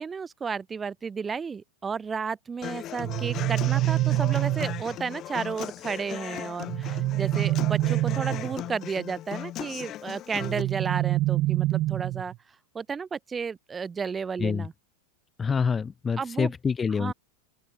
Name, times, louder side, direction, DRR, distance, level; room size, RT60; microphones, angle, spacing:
voice 1, 0.0-12.3 12.7-14.7 16.2-16.5 17.0-17.1, right 5 dB, 15° right, 4.0 m, -33 dB
Human voice / Acoustic guitar, 2.6-10.6, left 13 dB, 30° left, 6.8 m, -38 dB
sound 1, 3.0-5.0 6.7-8.7 10.4-12.4, right 17 dB, 35° right, 1.6 m, -26 dB
voice 2, 15.4-17.1, left 5 dB, 15° left, 2.3 m, -26 dB
open air
figure-of-eight pair, 90°, 0 cm